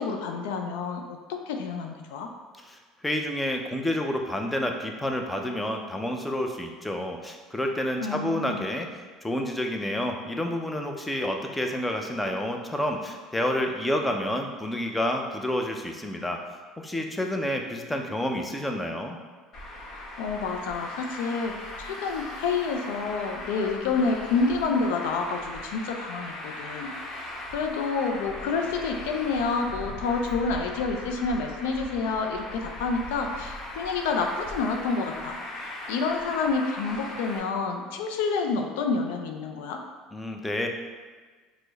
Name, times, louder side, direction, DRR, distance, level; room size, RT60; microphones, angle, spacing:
voice 1, 0.0-2.3 8.0-8.7 20.2-27.2 27.5-35.4 35.9-39.8, left 4 dB, 80° left, 4 dB, 0.4 m, -28 dB
voice 2, 2.6-8.9 9.2-16.4 16.8-19.2 40.1-40.7, left 1 dB, 10° left, 3 dB, 0.5 m, -29 dB
Traffic noise roadway noise, 19.5-37.4, left 1 dB, 50° left, 1.0 m, -39 dB
4.5 x 2.1 x 3.9 m, 1.4 s
hypercardioid pair, 75°, 0 cm